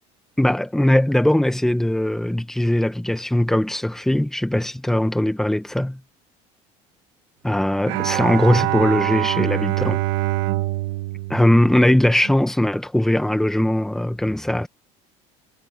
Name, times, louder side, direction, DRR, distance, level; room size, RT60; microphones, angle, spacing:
voice 1, 0.4-6.0 7.4-10.0 11.3-14.7, left 1 dB, 5° left, 1.6 m, -20 dB
Bowed string instrument, 7.9-12.3, right 19 dB, 75° right, 1.6 m, -24 dB
cardioid pair, 135°, 15 cm